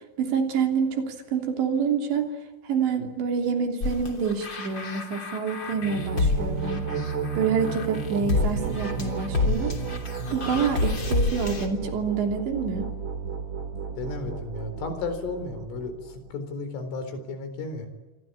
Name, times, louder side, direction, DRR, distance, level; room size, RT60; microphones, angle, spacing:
voice 1, 0.2-2.3 2.7-6.8 7.4-9.8 10.3-12.9, right 6 dB, 65° right, 4 dB, 5.1 m, -27 dB
sound 1, 3.8-11.7, left 3 dB, 25° left, 3.2 m, -29 dB
sound 2, 5.7-16.3, right 5 dB, 40° right, 1.8 m, -33 dB
voice 2, 14.0-17.9, left 3 dB, 85° left, 9 dB, 6.6 m, -34 dB
27.5 x 25.0 x 8.7 m, 1.2 s
omnidirectional pair, 5.6 m